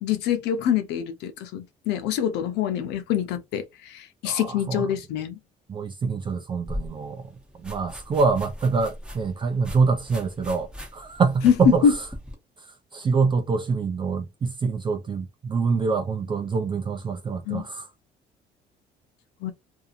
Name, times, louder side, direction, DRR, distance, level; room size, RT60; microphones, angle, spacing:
voice 1, 0.0-5.4 11.4-11.5 11.8-11.9 17.5-17.7 19.4-19.5, left 8 dB, 85° left, 0.6 m, -25 dB
voice 2, 4.2-4.9 5.7-7.2 7.6-12.0 12.6-17.9, right 4 dB, 30° right, 0.4 m, -25 dB
sound 1, 6.7-12.4, equal, 5° right, 1.1 m, -39 dB
2.7 x 2.4 x 2.5 m
cardioid pair, 110°, 17 cm